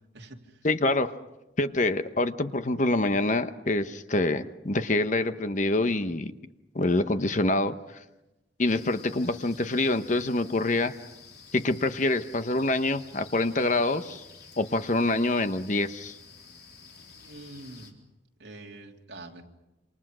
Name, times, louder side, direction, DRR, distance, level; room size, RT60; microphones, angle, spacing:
voice 1, 0.1-0.7 17.1-17.9 18.4-19.4, right 2 dB, 60° right, 1 dB, 3.0 m, -45 dB
voice 2, 0.6-1.1 1.6-6.3 6.7-7.7 8.6-10.9 11.5-14.2 14.6-16.1, left 2 dB, 40° left, 10 dB, 1.0 m, -26 dB
sound 1, 8.7-17.9, left 5 dB, 60° left, 4.0 m, -50 dB
27.5 x 27.0 x 6.3 m, 0.98 s
head